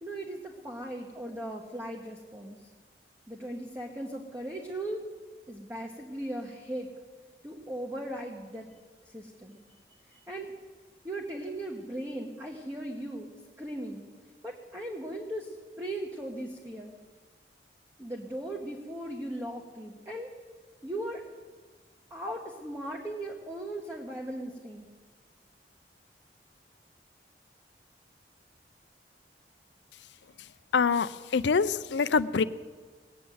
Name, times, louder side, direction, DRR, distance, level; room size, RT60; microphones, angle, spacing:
voice 1, 0.0-2.6 3.3-5.0 5.5-6.9 7.4-8.7 9.1-9.6 10.1-10.5 11.0-13.3 13.6-14.0 14.4-16.9 18.0-20.4 20.8-21.2 22.1-24.9, right 1 dB, 15° right, -1 dB, 1.1 m, -38 dB
voice 2, 30.7-32.4, left 5 dB, 85° left, 14 dB, 0.5 m, -25 dB
19.5 x 8.7 x 7.8 m, 1.5 s
head